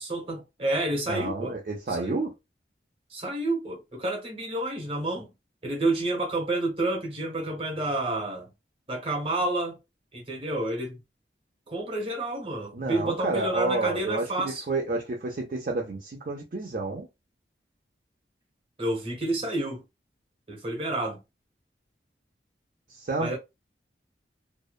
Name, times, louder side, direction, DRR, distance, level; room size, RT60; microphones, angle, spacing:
voice 1, 0.0-1.5 1.9-2.2 3.1-5.3 5.6-8.5 8.9-9.8 10.1-11.0 11.7-14.6 18.8-19.8 20.5-21.2 23.2-23.4, right 2 dB, 30° right, 0.9 m, -29 dB
voice 2, 1.1-2.3 12.7-17.1 22.9-23.4, right 3 dB, 50° right, 0.4 m, -30 dB
2.6 x 2.1 x 2.2 m
head